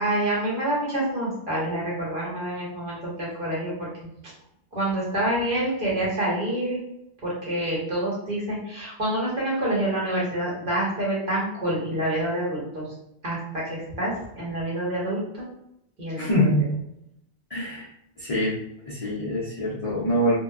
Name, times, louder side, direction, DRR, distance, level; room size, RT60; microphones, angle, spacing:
voice 1, 0.0-3.9 4.7-6.8 7.2-12.8 13.2-15.5 16.0-16.5, right 1 dB, 50° right, -6 dB, 1.1 m, -27 dB
voice 2, 16.2-16.7 17.5-17.9 18.2-18.6 18.8-20.4, equal, 45° left, -8 dB, 0.5 m, -24 dB
2.8 x 2.1 x 2.3 m, 0.79 s
omnidirectional pair, 1.2 m